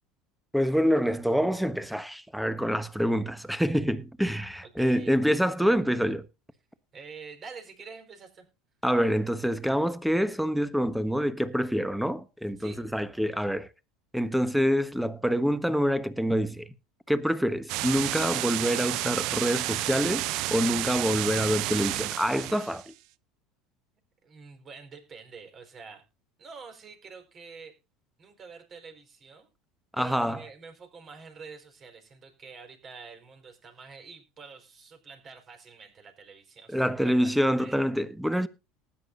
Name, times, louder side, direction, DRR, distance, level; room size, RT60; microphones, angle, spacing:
voice 1, 0.5-6.3 8.8-13.7 14.1-16.7 17.1-22.9 29.9-30.4 36.7-38.5, equal, ahead, 1.2 m, -26 dB
voice 2, 4.6-5.1 6.9-8.5 12.6-12.8 24.2-26.0 26.4-27.8 28.2-29.5 30.0-37.3 37.6-38.0, right 5 dB, 35° right, 4.5 m, -47 dB
sound 1, 17.7-22.9, right 17 dB, 60° right, 0.6 m, -31 dB
19.0 x 10.0 x 2.6 m
hypercardioid pair, 80°, 0 cm